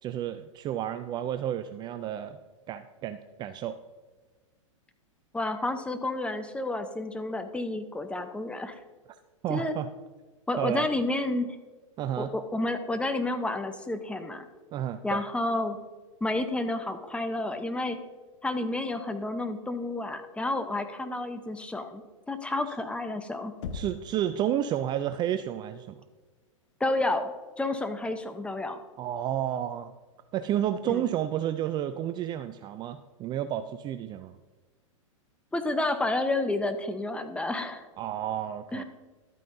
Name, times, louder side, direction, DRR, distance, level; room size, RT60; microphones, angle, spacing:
voice 1, 0.0-2.4 2.7-3.8 9.4-9.9 10.6-10.9 12.0-12.3 14.7-15.2 22.7-22.8 23.7-26.0 29.0-29.9 30.3-34.4 38.0-38.8, right 11 dB, 25° right, 11 dB, 0.3 m, -31 dB
voice 2, 5.3-8.8 9.5-9.7 10.5-11.5 12.2-14.5 15.0-15.8 16.2-18.0 18.4-22.0 22.3-23.5 26.8-27.3 27.6-28.8 30.9-31.0 35.5-37.9 38.7-38.8, left 2 dB, 5° left, 8 dB, 0.8 m, -30 dB
Knock, 23.6-24.3, left 5 dB, 70° left, 0.9 m, -37 dB
12.5 x 9.0 x 2.7 m, 1.3 s
hypercardioid pair, 110°, 17 cm